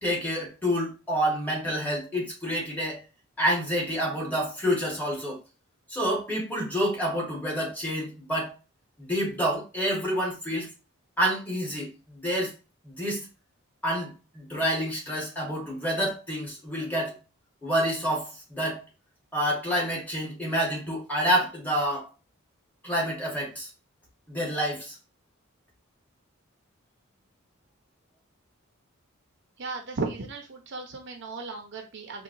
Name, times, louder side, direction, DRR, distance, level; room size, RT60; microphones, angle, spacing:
voice 1, 0.0-3.0 3.4-5.4 5.9-8.5 9.0-10.7 11.2-12.5 12.8-13.3 13.8-17.2 17.6-18.8 19.3-22.1 22.8-23.7 24.3-24.9, equal, 10° left, -3 dB, 1.0 m, -28 dB
voice 2, 29.6-32.2, right 3 dB, 55° right, 3 dB, 0.5 m, -35 dB
3.8 x 2.1 x 2.5 m, 0.30 s
head